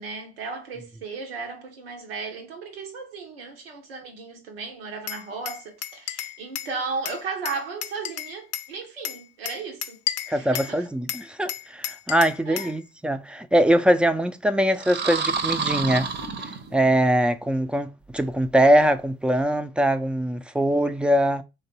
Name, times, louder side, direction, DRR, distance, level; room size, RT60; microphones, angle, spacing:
voice 1, 0.0-10.0 10.3-10.8 12.5-12.7, right 4 dB, 80° right, 0.9 m, -35 dB
Glass, 5.1-6.7 7.0-8.7 9.0-10.7 11.1-12.8, left 11 dB, 55° left, 0.6 m, -33 dB
voice 2, 10.3-16.1 16.4-21.4, right 1 dB, 5° right, 0.5 m, -22 dB
sound 1, 14.7-17.1, right 5 dB, 35° right, 0.8 m, -28 dB
3.3 x 3.2 x 4.3 m
figure-of-eight pair, 55°, 29 cm